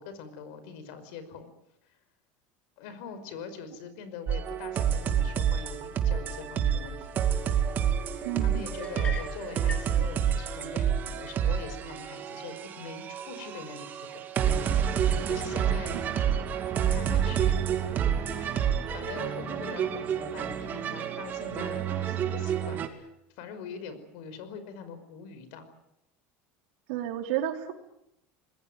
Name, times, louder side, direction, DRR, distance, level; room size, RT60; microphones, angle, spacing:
voice 1, 0.0-1.5 2.8-7.2 8.4-14.2 15.3-16.0 16.9-17.6 18.4-18.6 18.9-23.1 23.4-25.7, left 6 dB, 70° left, 11 dB, 5.3 m, -43 dB
sound 1, 4.3-22.9, right 8 dB, 30° right, 2.5 m, -29 dB
voice 2, 8.3-8.6 15.9-16.0 26.9-27.7, right 12 dB, 80° right, 5 dB, 3.8 m, -31 dB
sound 2, 8.8-9.9, left 5 dB, 20° left, 2.3 m, -40 dB
25.5 x 21.0 x 9.3 m, 0.82 s
cardioid pair, 155°, 6 cm